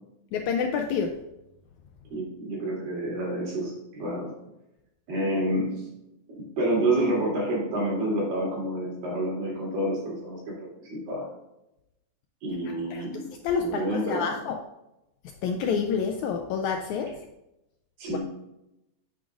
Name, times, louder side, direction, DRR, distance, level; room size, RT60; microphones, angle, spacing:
voice 1, 0.3-1.2 12.9-13.0 13.4-14.6 15.4-17.1 18.1-18.2, left 6 dB, 90° left, 4 dB, 1.7 m, -28 dB
voice 2, 2.1-4.3 5.1-5.9 6.4-10.4 10.8-11.3 12.4-13.2 13.6-14.4 18.0-18.2, right 1 dB, 85° right, -3 dB, 4.7 m, -28 dB
9.9 x 8.4 x 2.5 m, 0.90 s
omnidirectional pair, 3.9 m